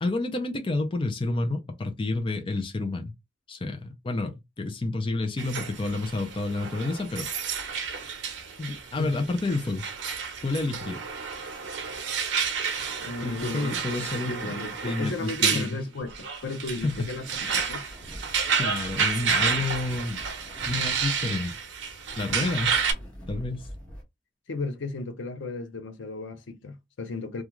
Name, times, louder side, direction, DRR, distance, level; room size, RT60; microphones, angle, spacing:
voice 1, 0.0-3.1 3.5-7.7 8.6-9.9 10.4-11.0 13.2-14.5 14.8-15.8 16.8-17.1 18.6-20.2 20.7-21.5 22.2-22.8 23.3-23.7, left 2 dB, 30° left, 0.5 m, -30 dB
sound 1, 5.4-22.9, right 6 dB, 75° right, 0.6 m, -30 dB
voice 2, 13.0-13.8 14.1-17.8 24.5-27.4, left 3 dB, 85° left, 0.6 m, -34 dB
sound 2, 16.0-24.0, equal, 5° left, 1.0 m, -45 dB
2.4 x 2.3 x 2.9 m
head